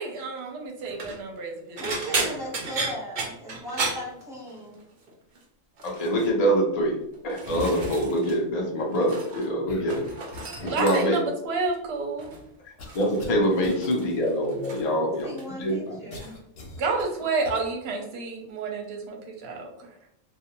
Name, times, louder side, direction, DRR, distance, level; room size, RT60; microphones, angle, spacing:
voice 1, 0.0-2.3 10.6-12.3 16.8-19.7, right 4 dB, 60° right, 1 dB, 0.8 m, -30 dB
sound 1, 0.8-1.2 1.8-4.8 5.1-5.4 5.8-6.3 7.0-8.4 8.6-9.5 9.8-11.3 12.2-12.5 12.9-14.9 15.2-15.7 16.1-16.3 17.6-17.7, right 3 dB, 80° right, 0.4 m, -34 dB
voice 2, 1.8-4.8 15.0-16.3, equal, 5° right, -6 dB, 0.8 m, -37 dB
voice 3, 5.8-7.0 7.2-10.0 10.6-11.3 12.6-16.0, equal, 75° left, 0 dB, 0.3 m, -25 dB
sound 2, 7.5-8.2 9.7-10.9 11.7-11.8 12.8-13.4 13.6-13.8 16.1-17.5, left 3 dB, 55° left, 0.8 m, -40 dB
2.4 x 2.3 x 2.9 m, 0.75 s
omnidirectional pair, 1.5 m